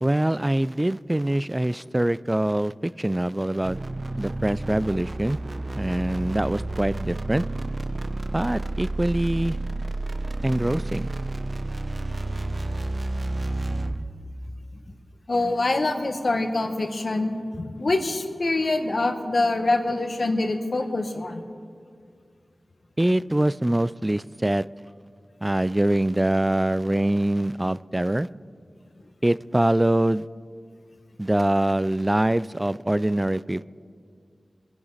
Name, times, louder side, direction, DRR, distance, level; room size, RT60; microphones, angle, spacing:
voice 1, 0.0-3.8 4.2-5.4 5.7-7.4 8.3-9.6 10.4-11.1 23.0-24.7 25.4-28.3 29.2-30.3 31.2-33.6, right 1 dB, 20° right, 18 dB, 0.3 m, -24 dB
sound 1, 3.6-14.1, right 2 dB, 45° right, 0.7 m, -30 dB
voice 2, 15.3-21.5, left 2 dB, 60° left, 5 dB, 1.5 m, -25 dB
24.5 x 11.0 x 4.1 m, 2.1 s
wide cardioid pair, 55°, 0 cm